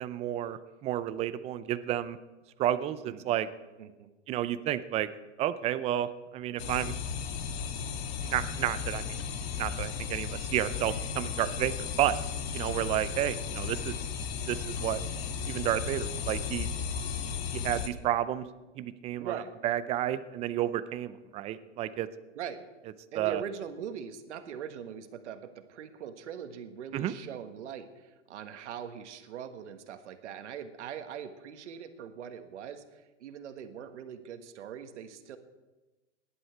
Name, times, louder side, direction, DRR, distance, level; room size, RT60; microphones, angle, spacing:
voice 1, 0.0-2.2 2.6-3.5 4.3-5.1 5.4-6.9 8.2-9.2 9.6-12.2 12.5-14.0 14.5-15.0 15.5-16.7 17.5-18.5 18.8-22.1 23.1-23.4 26.9-27.1, right 12 dB, 20° right, 13 dB, 0.5 m, -31 dB
voice 2, 3.1-3.4 3.8-4.1 19.2-19.5 22.3-22.6 23.1-35.4, right 8 dB, 70° right, 8 dB, 1.7 m, -41 dB
sound 1, 6.6-17.9, left 6 dB, 55° left, 1.6 m, -35 dB
18.5 x 11.5 x 4.6 m, 1.1 s
hypercardioid pair, 135°, 36 cm